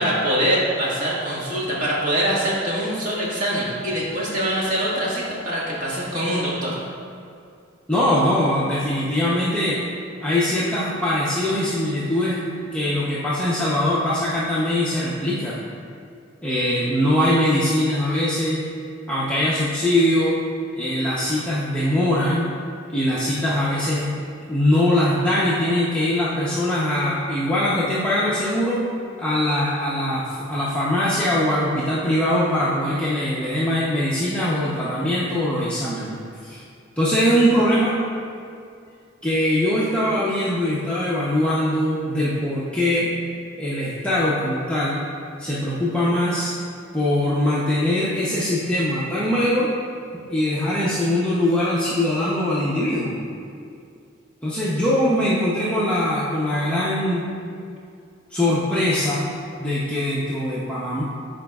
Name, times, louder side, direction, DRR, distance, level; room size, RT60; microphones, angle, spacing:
voice 1, 0.0-6.8, equal, 45° right, -7 dB, 1.7 m, -23 dB
voice 2, 7.9-9.8 10.2-12.4 12.7-15.5 16.4-18.6 19.1-20.4 20.8-22.5 22.9-24.1 24.5-28.8 29.2-36.6 37.0-37.9 39.2-43.1 43.5-45.0 45.4-46.5 46.9-49.7 50.1-53.2 54.4-57.3 58.3-59.3 59.6-61.0, left 1 dB, 5° left, -9 dB, 0.7 m, -22 dB
13.0 x 5.0 x 2.4 m, 2.4 s
head